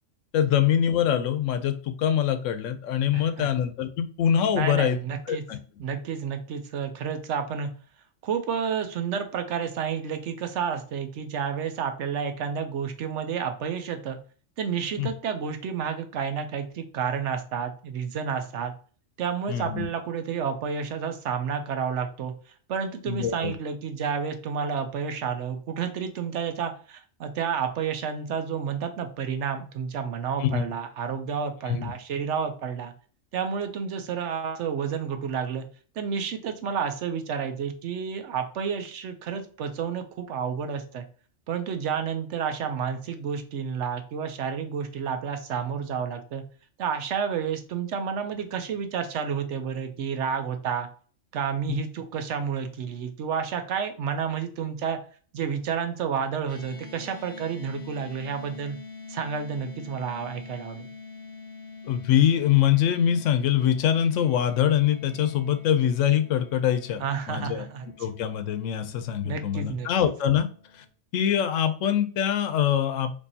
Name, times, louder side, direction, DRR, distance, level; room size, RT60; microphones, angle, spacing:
voice 1, 0.3-5.0 5.3-5.6 15.0-15.1 19.5-19.9 23.1-23.5 30.4-30.6 31.7-31.9 51.7-51.8 61.8-67.0 67.3-67.7 68.0-70.5 70.7-70.8 71.1-73.1, left 10 dB, 75° left, 10 dB, 0.9 m, -24 dB
voice 2, 3.1-3.5 4.5-5.4 5.8-7.7 8.2-14.2 14.6-18.7 19.2-22.3 22.7-32.9 33.3-35.7 36.0-41.0 41.5-46.4 46.8-50.9 51.3-55.0 55.3-58.8 59.1-60.9 67.0-67.9 69.2-69.9, right 7 dB, 70° right, 7 dB, 0.9 m, -30 dB
sound 1, 56.5-70.9, left 4 dB, 35° left, 0.9 m, -46 dB
4.5 x 2.7 x 2.7 m, 0.41 s
omnidirectional pair, 1.3 m